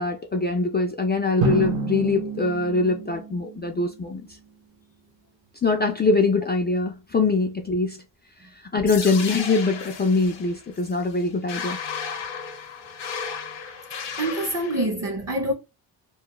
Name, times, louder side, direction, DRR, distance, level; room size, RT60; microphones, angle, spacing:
voice 1, 0.0-4.2 5.6-8.0 8.7-11.8, left 3 dB, 25° left, 0.3 m, -23 dB
Drum, 1.4-4.1, right 4 dB, 85° right, 0.9 m, -28 dB
sound 1, 8.9-14.8, left 6 dB, 65° left, 0.8 m, -34 dB
voice 2, 13.9-15.5, right 1 dB, 35° right, 0.7 m, -26 dB
2.3 x 2.1 x 2.9 m
cardioid pair, 115°, 46 cm